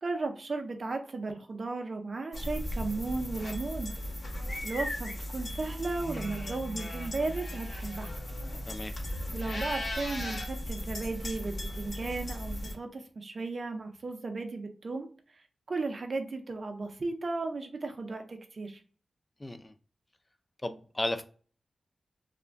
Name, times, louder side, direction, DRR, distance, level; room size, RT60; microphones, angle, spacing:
voice 1, 0.0-3.9 4.6-8.1 9.3-15.1 15.7-18.8, right 3 dB, 55° right, 4 dB, 0.5 m, -35 dB
sound 1, 2.3-12.7, left 1 dB, 70° left, 0.9 m, -36 dB
voice 2, 19.4-19.7 20.6-21.2, left 1 dB, 25° left, 9 dB, 0.3 m, -34 dB
2.4 x 2.1 x 3.3 m, 0.41 s
wide cardioid pair, 80°, 0 cm